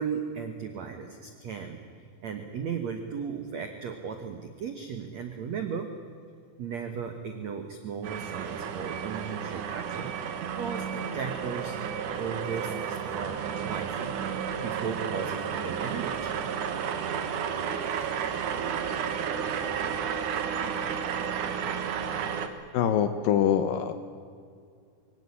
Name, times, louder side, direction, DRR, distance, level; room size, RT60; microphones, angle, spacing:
voice 1, 0.0-1.8 2.2-5.9 6.6-11.8 12.2-13.4 13.6-14.2 14.6-16.3, right 6 dB, 85° right, 6 dB, 1.5 m, -36 dB
sound 1, 8.0-22.5, right 7 dB, 60° right, 2.1 m, -32 dB
voice 2, 22.7-23.9, left 9 dB, 90° left, 9 dB, 1.9 m, -24 dB
24.5 x 17.0 x 9.7 m, 2.3 s
omnidirectional pair, 5.3 m